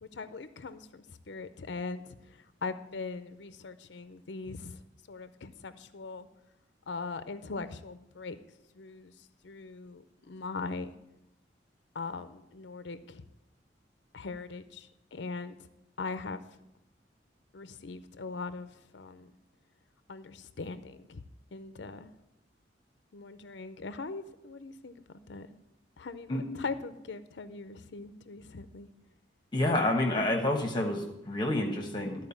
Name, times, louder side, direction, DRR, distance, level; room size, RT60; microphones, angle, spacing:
voice 1, 0.0-4.8 5.1-6.3 6.9-8.4 8.7-10.9 11.9-13.2 14.1-15.6 16.0-16.4 17.5-19.3 20.1-21.2 21.5-22.1 23.1-25.5 26.0-28.9, left 4 dB, 70° left, 12 dB, 0.6 m, -41 dB
voice 2, 29.5-32.3, left 1 dB, 25° left, 1 dB, 1.1 m, -29 dB
13.0 x 4.6 x 7.0 m, 0.89 s
head